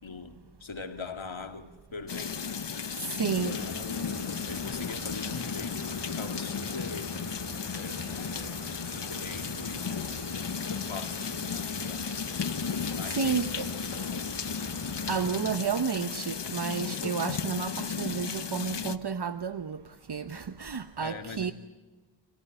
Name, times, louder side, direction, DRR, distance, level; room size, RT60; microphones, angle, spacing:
voice 1, 0.0-2.6 3.2-7.2 7.7-10.2 10.6-12.1 12.9-13.8 15.2-15.6 21.0-21.5, left 4 dB, 80° left, 2.2 m, -42 dB
sound 1, 2.1-19.0, left 6 dB, 60° left, 1.1 m, -34 dB
voice 2, 3.0-3.7 13.0-13.7 15.1-19.8 20.1-21.5, right 6 dB, 55° right, 0.9 m, -31 dB
sound 2, 3.4-15.4, right 2 dB, 40° right, 3.2 m, -44 dB
26.5 x 17.5 x 9.1 m
wide cardioid pair, 55°, 46 cm